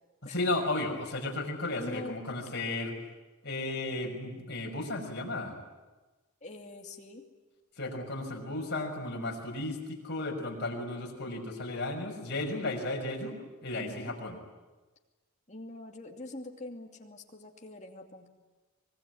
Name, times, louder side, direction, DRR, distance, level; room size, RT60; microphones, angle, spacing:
voice 1, 0.3-2.9 3.4-5.5 7.8-14.4, left 2 dB, 50° left, 1 dB, 5.8 m, -34 dB
voice 2, 1.7-2.2 6.4-7.2 13.7-14.1 15.5-18.3, left 2 dB, 30° left, 2 dB, 2.6 m, -44 dB
24.5 x 22.0 x 9.4 m, 1.2 s
head